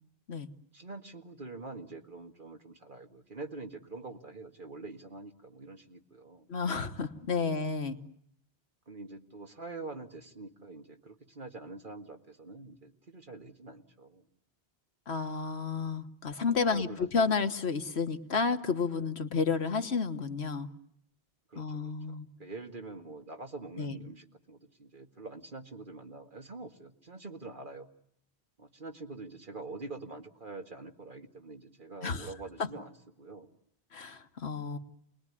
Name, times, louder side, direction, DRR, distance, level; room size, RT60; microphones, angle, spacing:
voice 1, 0.7-6.5 7.4-7.7 8.9-14.2 16.6-17.1 21.5-27.9 28.6-33.5, right 3 dB, 50° right, 4 dB, 2.1 m, -45 dB
voice 2, 6.5-8.0 15.1-20.7 21.6-22.3 23.8-24.0 32.0-32.3 32.6-32.7 33.9-34.8, left 5 dB, 70° left, 8 dB, 1.6 m, -31 dB
29.0 x 21.0 x 9.8 m, 0.71 s
omnidirectional pair, 1.1 m